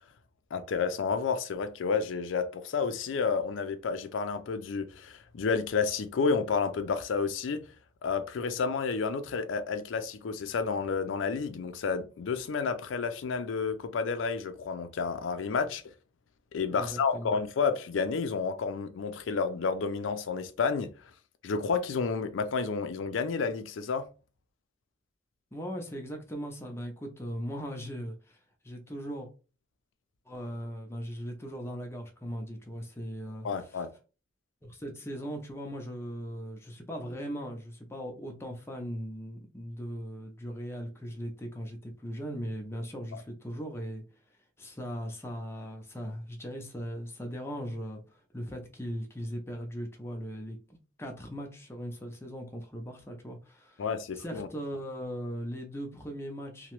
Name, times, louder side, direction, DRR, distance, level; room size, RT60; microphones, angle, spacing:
voice 1, 0.5-7.6 8.0-15.8 16.5-20.9 21.4-24.1 33.4-33.9 53.8-54.5, left 5 dB, 90° left, 0.4 m, -30 dB
voice 2, 16.7-17.3 25.5-29.3 30.3-33.8 34.6-44.0 44.6-53.8 54.1-56.7, equal, 15° left, 0.6 m, -39 dB
2.8 x 2.1 x 3.0 m
head